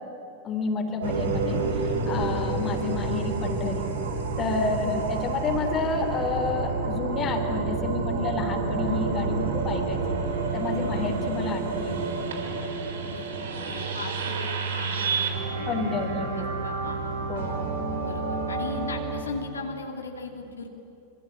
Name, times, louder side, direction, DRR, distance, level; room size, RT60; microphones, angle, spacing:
voice 1, 0.4-1.6 2.0-3.9 4.4-10.0 10.5-12.0 15.7-16.5 17.3-17.8, left 4 dB, 25° left, 5 dB, 3.6 m, -30 dB
sound 1, 1.0-19.2, right 4 dB, 65° right, 4.1 m, -29 dB
voice 2, 4.7-5.1 10.9-11.1 13.0-17.3 18.0-20.7, left 4 dB, 70° left, 2 dB, 2.6 m, -39 dB
25.5 x 25.0 x 8.5 m, 2.9 s
figure-of-eight pair, 90°, 0 cm